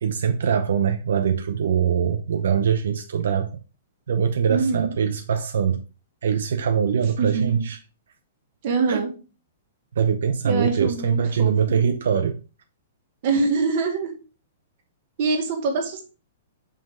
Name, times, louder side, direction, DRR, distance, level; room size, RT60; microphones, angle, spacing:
voice 1, 0.0-3.6 4.1-5.8 6.2-7.8 8.9-9.0 10.0-12.4, right 7 dB, 80° right, 0.7 m, -22 dB
voice 2, 4.5-4.9 7.2-7.6 8.6-9.1 10.4-11.8 13.2-14.2 15.2-16.0, right 4 dB, 40° right, 1.7 m, -24 dB
5.5 x 5.1 x 3.8 m
hypercardioid pair, 170°, 0 cm